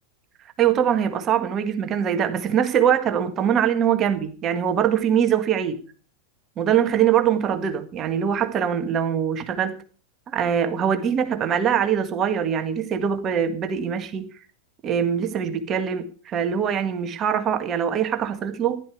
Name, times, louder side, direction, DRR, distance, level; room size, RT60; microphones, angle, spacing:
voice 1, 0.6-5.8 6.6-9.8 10.3-14.3 14.8-18.8, right 8 dB, 30° right, 1.8 m, -23 dB
15.0 x 11.5 x 4.7 m
figure-of-eight pair, 90°, 0 cm